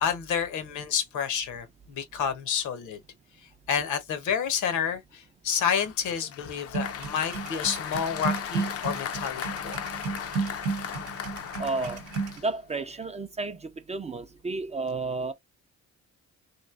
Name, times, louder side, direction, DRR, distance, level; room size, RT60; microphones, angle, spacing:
voice 1, 0.0-3.0 3.7-9.9, left 7 dB, 75° left, 0.9 m, -29 dB
Applause, 5.7-12.9, left 9 dB, 50° left, 0.5 m, -37 dB
sound 1, 6.7-12.4, right 5 dB, 90° right, 0.7 m, -33 dB
voice 2, 11.6-12.0 12.4-15.3, right 3 dB, 25° right, 0.4 m, -32 dB
3.0 x 2.6 x 2.4 m
cardioid pair, 90°, 30 cm